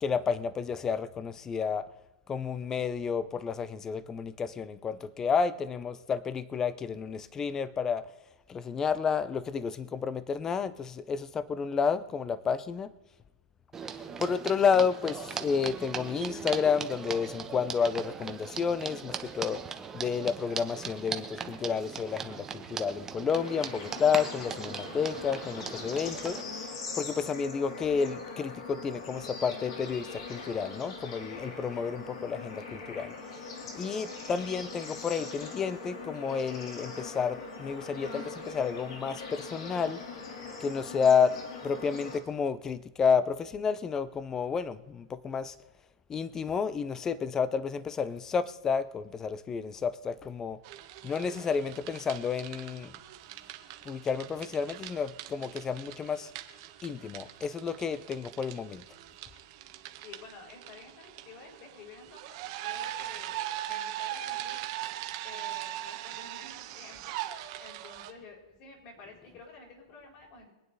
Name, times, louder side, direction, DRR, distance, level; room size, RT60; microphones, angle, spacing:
voice 1, 0.0-1.9 2.3-8.1 8.5-12.9 14.2-19.6 19.9-26.4 26.9-33.1 33.7-40.0 40.6-41.4 41.6-45.5 46.1-50.6 51.0-52.9 53.9-56.3 56.8-58.8, left 6 dB, 15° left, 0.6 m, -30 dB
sound 1, 13.7-26.4, right 6 dB, 15° right, 0.9 m, -39 dB
Bird / Insect / Frog, 23.3-42.2, left 4 dB, 65° left, 3.6 m, -42 dB
voice 2, 31.7-32.0 60.0-62.4 62.6-64.6 65.2-70.5, left 4 dB, 40° left, 4.9 m, -51 dB
sound 2, 50.6-68.1, right 13 dB, 45° right, 1.2 m, -41 dB
24.5 x 9.3 x 4.1 m
hypercardioid pair, 150°, 3 cm